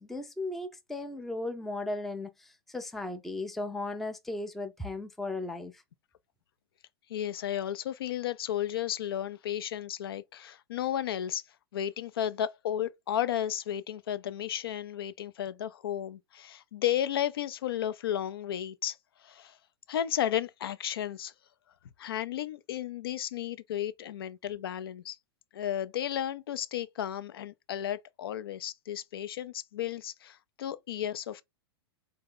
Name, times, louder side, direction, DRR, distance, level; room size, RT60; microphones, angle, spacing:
voice 1, 0.0-5.8, left 2 dB, ahead, 0.4 m, -36 dB
voice 2, 7.1-11.4 11.7-19.0 19.2-19.6 19.9-21.3 22.0-25.2 25.5-31.4, left 11 dB, 65° left, 0.4 m, -33 dB
3.9 x 2.8 x 3.6 m
figure-of-eight pair, 100°, 13 cm